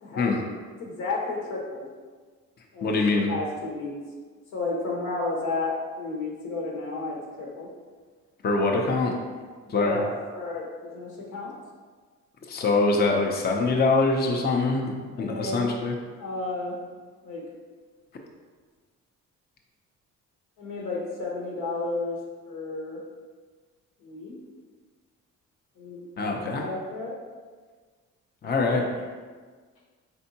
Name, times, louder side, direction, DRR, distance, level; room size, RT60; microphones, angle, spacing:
voice 1, 0.8-1.8 2.7-4.0 4.5-7.7 9.8-11.5 15.2-15.7 16.2-16.8 17.2-17.4 20.6-22.2 22.5-23.0 24.0-24.4 25.8-27.2, left 3 dB, 90° left, -3 dB, 1.2 m, -32 dB
voice 2, 2.8-3.3 8.4-9.1 9.7-10.0 12.5-14.9 15.2-16.0 26.2-26.6 28.4-28.9, left 3 dB, 35° left, 1 dB, 0.5 m, -24 dB
4.4 x 3.4 x 2.8 m, 1.5 s
cardioid pair, 90°, 30 cm